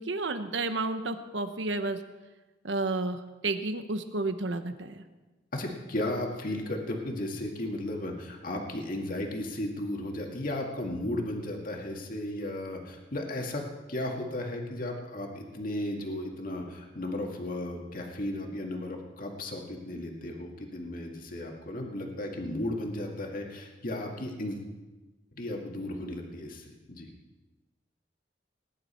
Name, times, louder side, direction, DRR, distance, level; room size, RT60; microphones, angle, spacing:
voice 1, 0.0-2.0 2.6-5.0, right 2 dB, 90° right, 9 dB, 1.1 m, -31 dB
voice 2, 5.5-13.6 13.9-24.7 25.3-27.1, left 1 dB, 50° left, 1 dB, 2.0 m, -35 dB
20.0 x 10.5 x 4.4 m, 1.2 s
head